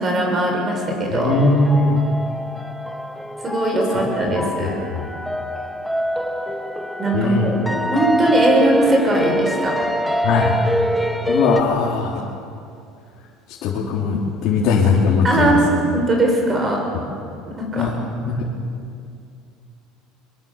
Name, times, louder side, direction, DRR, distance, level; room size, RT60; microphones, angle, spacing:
voice 1, 0.0-1.4 3.4-4.7 7.0-9.8 15.2-16.8 17.6-17.9, right 1 dB, 20° right, 1 dB, 6.2 m, -20 dB
voice 2, 1.1-2.0 4.3-4.4 4.6-4.7 7.1-7.5 10.2-10.6 11.3-12.1 13.6-15.6 16.9-17.0 17.8-17.9 18.3-18.4, left 4 dB, 55° left, -4 dB, 3.5 m, -19 dB
sound 1, 1.3-11.6, equal, ahead, 1.4 m, -24 dB
23.0 x 23.0 x 7.4 m, 2.4 s
cardioid pair, 140°, 0 cm